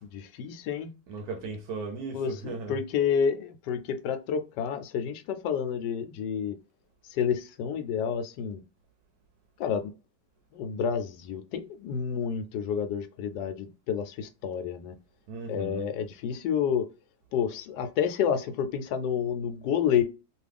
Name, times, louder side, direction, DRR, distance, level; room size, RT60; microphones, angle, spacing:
voice 1, 0.0-0.9 2.1-6.6 7.1-8.6 9.6-9.9 10.5-14.9 15.5-16.9 17.3-20.0, left 7 dB, 80° left, 1.2 m, -29 dB
voice 2, 1.1-2.8 15.3-15.9, right 4 dB, 70° right, 1.0 m, -37 dB
3.0 x 2.4 x 3.3 m
omnidirectional pair, 1.9 m